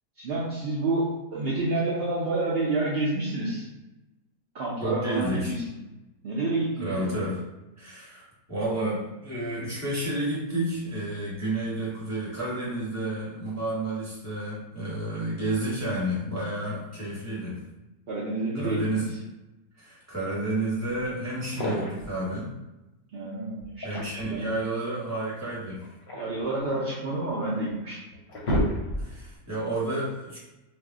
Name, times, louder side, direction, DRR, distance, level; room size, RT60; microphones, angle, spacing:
voice 1, 0.2-3.7 4.5-5.6 6.2-7.2 18.1-19.0 23.1-23.9 24.3-24.5 26.1-28.0, right 2 dB, 75° right, -6 dB, 0.5 m, -29 dB
voice 2, 4.8-5.5 6.8-7.4 7.8-17.6 18.5-19.0 19.8-22.5 23.8-25.9 29.0-30.4, right 1 dB, 10° right, -7 dB, 0.9 m, -31 dB
sound 1, 21.4-22.1 23.6-24.4 25.7-27.1 27.7-27.8 28.1-29.3, equal, 50° left, 0.7 m, -30 dB
2.6 x 2.0 x 3.5 m, 1.0 s
omnidirectional pair, 1.7 m